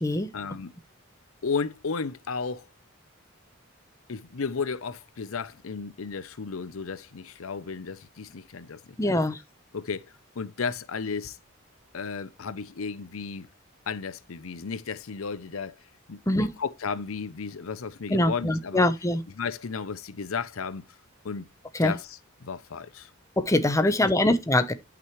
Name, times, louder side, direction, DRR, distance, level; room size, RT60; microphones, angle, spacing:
voice 1, 0.3-0.7 1.4-2.7 4.1-9.1 9.7-11.4 11.9-13.5 13.9-18.9 19.4-20.8 21.2-21.5 21.8-23.1 23.8-24.1, left 5 dB, 75° left, 0.7 m, -34 dB
voice 2, 9.0-9.4 16.3-16.5 18.1-19.2 21.8-21.9 23.4-24.7, left 1 dB, 15° left, 0.9 m, -23 dB
11.0 x 6.0 x 3.1 m
head